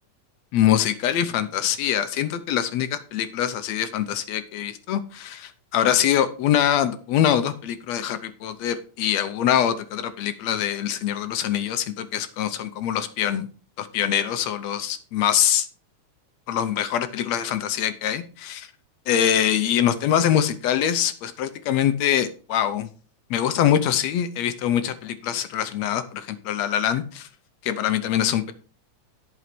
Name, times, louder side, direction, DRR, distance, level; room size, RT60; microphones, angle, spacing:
voice 1, 0.5-13.5 13.8-15.7 16.5-18.7 19.1-22.9 23.3-27.3 27.6-28.5, left 10 dB, 70° left, 11 dB, 1.9 m, -24 dB
11.0 x 6.1 x 5.9 m, 0.39 s
omnidirectional pair, 3.4 m